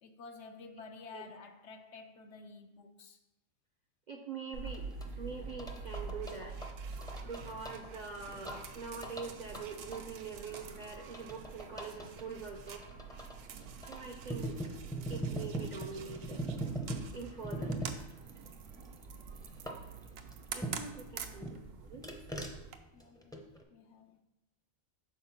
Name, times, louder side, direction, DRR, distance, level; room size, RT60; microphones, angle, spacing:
voice 1, 0.0-3.2 22.9-24.2, left 4 dB, 70° left, 0.8 m, -51 dB
voice 2, 4.1-4.9 5.2-6.6 7.2-12.8 13.9-14.6 15.1-16.5 17.1-17.8 20.5-22.1, right 4 dB, 50° right, 0.6 m, -44 dB
sound 1, 4.5-22.8, right 5 dB, 80° right, 1.0 m, -46 dB
sound 2, 4.7-21.0 21.4-23.6, right 1 dB, 5° left, 0.5 m, -43 dB
6.3 x 4.3 x 5.8 m
omnidirectional pair, 1.4 m